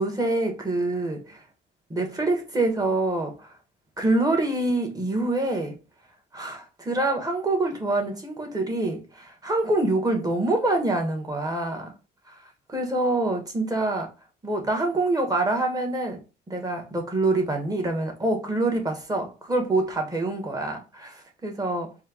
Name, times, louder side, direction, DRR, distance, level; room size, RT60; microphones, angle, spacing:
voice 1, 0.0-1.4 1.9-3.5 4.0-5.8 6.3-11.9 12.3-12.4 12.7-14.1 14.4-16.2 16.5-22.0, right 2 dB, 20° right, 1.4 m, -26 dB
4.3 x 2.3 x 3.7 m
cardioid pair, 90°, 20 cm